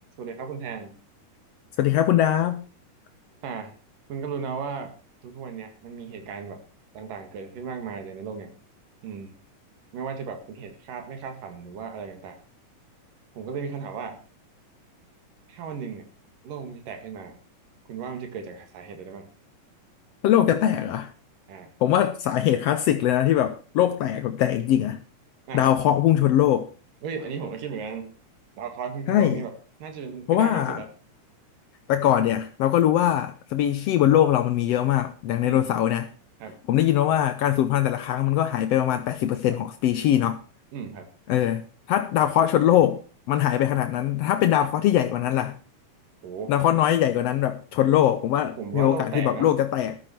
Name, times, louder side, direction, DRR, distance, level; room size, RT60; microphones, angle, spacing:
voice 1, 0.2-1.0 3.4-3.7 4.1-5.0 5.2-6.6 6.9-8.6 9.0-9.4 9.9-12.4 13.4-14.2 15.5-16.1 16.4-17.4 17.9-19.3 21.5-21.7 25.5-25.7 27.0-28.1 28.6-29.5 29.8-30.9 35.4-35.7 36.4-36.6 39.5-39.6 40.7-41.1 46.2-46.5 48.6-49.5, right 6 dB, 85° right, 3.6 m, -35 dB
voice 2, 1.8-2.6 20.2-21.1 21.8-25.0 25.5-26.7 29.1-29.4 30.3-30.8 31.9-36.1 36.7-40.4 41.3-41.6 41.9-43.0 43.3-45.6 46.5-50.0, left 11 dB, 70° left, 1.6 m, -22 dB
14.0 x 12.0 x 4.5 m
omnidirectional pair, 3.7 m